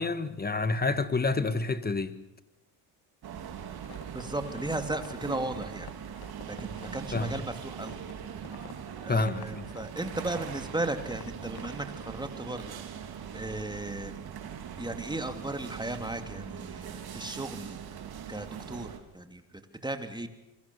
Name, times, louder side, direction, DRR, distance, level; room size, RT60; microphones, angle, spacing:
voice 1, 0.0-2.2 7.1-7.3 9.1-9.7, left 3 dB, 20° left, 1.8 m, -28 dB
sound 1, 3.2-19.0, right 8 dB, 55° right, 3.5 m, -41 dB
sound 2, 3.8-5.2 5.5-9.8 10.1-12.1, left 10 dB, 55° left, 2.0 m, -50 dB
voice 2, 4.1-5.9 6.5-8.0 9.0-12.8 13.3-14.2 14.8-17.8 18.3-18.9 19.1-20.3, right 1 dB, 10° right, 2.9 m, -36 dB
26.5 x 22.5 x 7.3 m
supercardioid pair, 70°, 45 cm